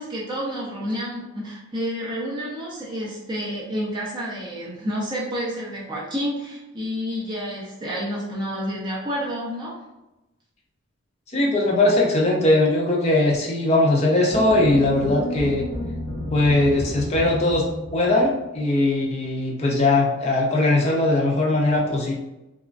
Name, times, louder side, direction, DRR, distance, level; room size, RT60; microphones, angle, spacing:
voice 1, 0.0-9.8, equal, 20° right, -6 dB, 0.5 m, -29 dB
voice 2, 11.3-15.7 16.3-17.6 17.9-22.1, left 2 dB, 30° left, -2 dB, 0.5 m, -20 dB
sound 1, 14.3-18.6, left 1 dB, 35° right, 1.0 m, -31 dB
2.9 x 2.2 x 2.4 m, 0.98 s
head